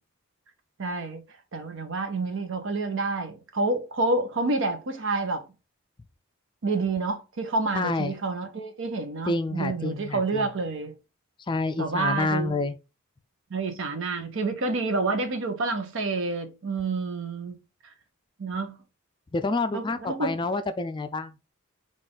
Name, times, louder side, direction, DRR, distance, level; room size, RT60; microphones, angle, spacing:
voice 1, 0.8-1.2 1.5-5.4 6.6-10.9 11.8-12.6 13.5-17.5 18.4-18.8 19.7-20.3, right 3 dB, 65° right, 0.8 m, -28 dB
voice 2, 7.7-8.1 9.3-10.5 11.5-12.8 19.3-21.3, left 3 dB, 20° left, 0.3 m, -28 dB
4.0 x 2.5 x 3.7 m
head